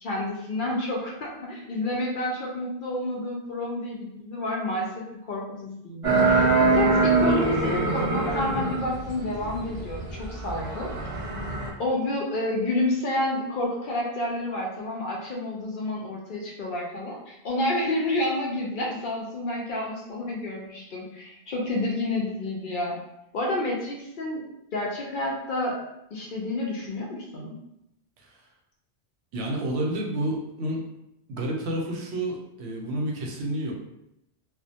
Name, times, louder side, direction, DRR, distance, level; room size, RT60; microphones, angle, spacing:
voice 1, 0.0-10.9 11.8-23.0 23.3-24.4 24.7-25.8 26.1-27.6, left 1 dB, 60° left, -2 dB, 0.6 m, -29 dB
sound 1, 6.0-11.7, right 3 dB, 50° right, 0.4 m, -24 dB
voice 2, 29.3-30.9 31.3-33.7, right 1 dB, 90° right, -1 dB, 0.9 m, -29 dB
2.3 x 2.1 x 2.7 m, 0.82 s
omnidirectional pair, 1.1 m